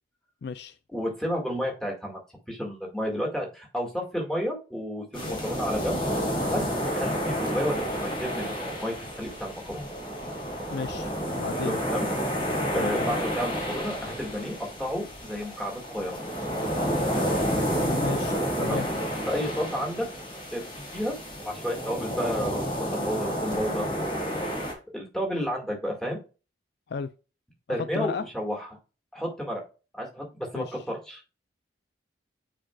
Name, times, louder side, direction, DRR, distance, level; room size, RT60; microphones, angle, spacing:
voice 1, 0.4-0.8 5.3-5.4 10.7-11.8 12.7-13.1 17.8-18.9 26.9-27.1 27.7-28.2 30.5-30.8, left 5 dB, 55° left, 0.4 m, -34 dB
voice 2, 0.9-2.2 2.5-6.0 6.5-9.9 11.6-12.1 12.7-16.2 18.6-18.8 19.3-20.1 20.5-26.2 27.7-28.7 29.1-29.6 29.9-30.3 30.5-31.2, equal, 5° left, 2.0 m, -32 dB
sound 1, 5.1-24.7, equal, 25° left, 1.6 m, -30 dB
8.8 x 4.6 x 2.4 m
head